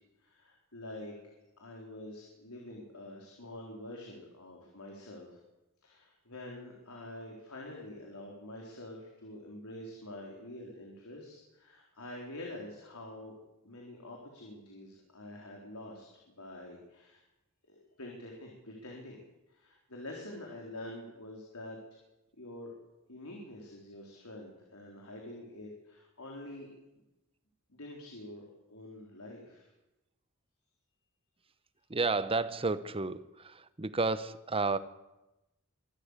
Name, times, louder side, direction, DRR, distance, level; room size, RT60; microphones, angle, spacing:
voice 1, 0.2-5.4 5.8-13.3 13.6-17.2 17.7-21.8 22.4-22.7 23.1-26.7 27.7-29.7, left 1 dB, 85° left, -1 dB, 4.2 m, -46 dB
voice 2, 31.9-34.8, right 3 dB, 25° right, 14 dB, 0.9 m, -31 dB
24.0 x 13.5 x 8.3 m, 0.98 s
head